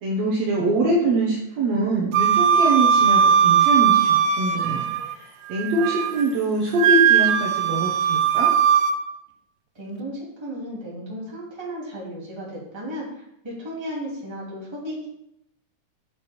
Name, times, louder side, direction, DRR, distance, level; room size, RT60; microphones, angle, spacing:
voice 1, 0.0-4.8 5.2-8.5, right 2 dB, 65° right, -3 dB, 2.2 m, -24 dB
Wind instrument woodwind instrument, 2.1-5.1 5.5-6.3 6.8-9.0, right 8 dB, 80° right, 1.6 m, -19 dB
voice 2, 9.7-15.1, equal, 10° right, -6 dB, 2.3 m, -34 dB
7.1 x 6.7 x 4.4 m, 0.79 s
omnidirectional pair, 3.7 m